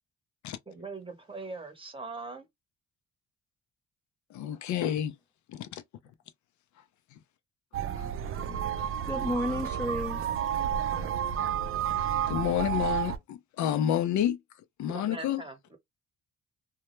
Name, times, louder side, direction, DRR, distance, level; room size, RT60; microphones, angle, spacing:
voice 1, 0.7-2.5 14.9-15.8, right 3 dB, 15° right, 0.9 m, -41 dB
voice 2, 4.3-5.2 5.5-5.8 6.8-6.9 7.1-7.2 8.0-8.1 8.8-8.9 12.0-15.4, left 10 dB, 70° left, 0.5 m, -30 dB
sound 1, 7.7-13.2, right 9 dB, 45° right, 0.4 m, -31 dB
voice 3, 9.0-10.4, left 1 dB, 10° left, 0.5 m, -32 dB
2.1 x 2.0 x 3.0 m
cardioid pair, 90°, 30 cm